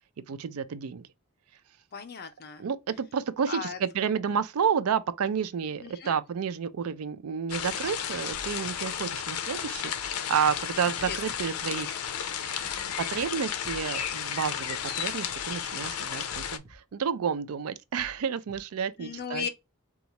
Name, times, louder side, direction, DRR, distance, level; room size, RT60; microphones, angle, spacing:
voice 1, 0.3-1.1 2.6-11.9 12.4-19.5, right 7 dB, 80° right, 0.4 m, -30 dB
voice 2, 1.9-2.6 3.5-3.8 5.8-6.2 11.1-11.2 11.6-12.1 12.6-12.9 19.0-19.5, left 6 dB, 50° left, 0.6 m, -37 dB
sound 1, 7.5-16.6, left 8 dB, 90° left, 0.5 m, -33 dB
sound 2, 8.3-8.7 10.0-10.2 10.5-10.6 11.0-11.4 12.6-12.8 13.1-13.2 13.6-14.1 15.3-15.5 15.8-15.9 16.3-16.7 18.0-18.2 18.5-18.6, equal, 20° right, 0.7 m, -49 dB
4.0 x 2.4 x 2.8 m
head